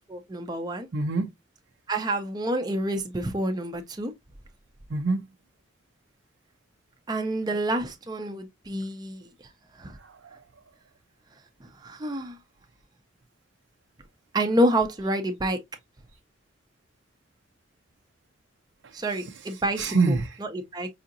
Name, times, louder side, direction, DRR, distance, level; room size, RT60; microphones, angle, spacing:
voice 1, 0.1-0.9 1.9-4.1 7.1-9.3 9.8-10.0 11.8-12.4 14.3-15.6 18.9-20.9, right 1 dB, 20° right, 0.5 m, -28 dB
voice 2, 0.9-1.3 4.9-5.2 10.0-10.4 18.8-19.3 19.8-20.4, right 3 dB, 85° right, 0.5 m, -27 dB
4.8 x 2.7 x 2.5 m
head